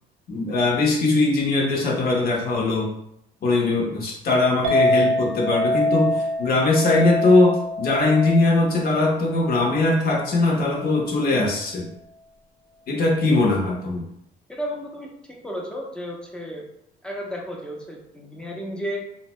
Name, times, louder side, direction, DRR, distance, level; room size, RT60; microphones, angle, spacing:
voice 1, 0.3-2.9 3.4-11.9 12.9-14.0, left 2 dB, 50° left, -1 dB, 0.7 m, -21 dB
Chink clink, 4.6-10.9, left 1 dB, 85° right, 0.6 m, -26 dB
voice 2, 14.5-16.7 17.0-19.1, equal, 5° left, -1 dB, 0.5 m, -33 dB
2.6 x 2.1 x 3.0 m, 0.73 s
cardioid pair, 125°, 19 cm